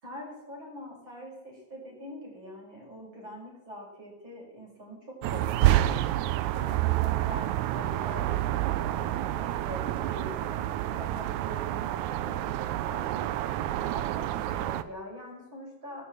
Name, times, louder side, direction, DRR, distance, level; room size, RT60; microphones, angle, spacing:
voice 1, 0.0-6.0 6.5-13.3 13.9-16.1, equal, 40° right, -2 dB, 6.2 m, -44 dB
sound 1, 5.2-14.8, right 14 dB, 85° right, 2.2 m, -28 dB
18.5 x 8.3 x 8.0 m, 0.94 s
omnidirectional pair, 3.3 m